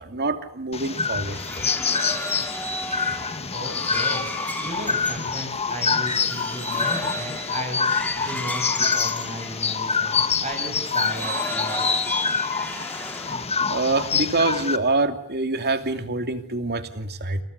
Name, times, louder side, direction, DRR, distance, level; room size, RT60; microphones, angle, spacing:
voice 1, 0.0-1.4 13.7-17.4, right 3 dB, 45° right, 8 dB, 2.6 m, -25 dB
sound 1, 0.7-14.8, left 5 dB, 30° left, 1.6 m, -26 dB
sound 2, 0.9-10.1 10.7-13.7, left 1 dB, 5° left, 3.3 m, -33 dB
voice 2, 3.5-11.9, right 1 dB, 30° right, 4 dB, 6.9 m, -35 dB
28.5 x 28.0 x 6.9 m, 0.65 s
head